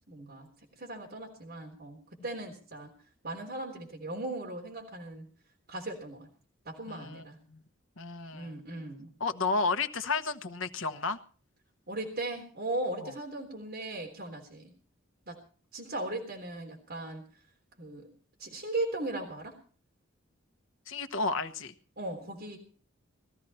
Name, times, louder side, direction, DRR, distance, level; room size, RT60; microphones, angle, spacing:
voice 1, 0.1-0.5 0.8-2.9 3.2-5.3 5.7-6.3 6.7-7.4 8.3-9.1 11.9-14.7 15.3-15.4 15.7-17.3 17.8-18.1 18.4-19.5 22.0-22.6, right 2 dB, 50° right, 3.7 m, -37 dB
voice 2, 6.9-7.2 7.5-7.6 8.0-8.6 9.2-11.2 13.0-13.1 20.9-21.7, left 4 dB, 70° left, 1.2 m, -32 dB
20.5 x 14.0 x 4.3 m
head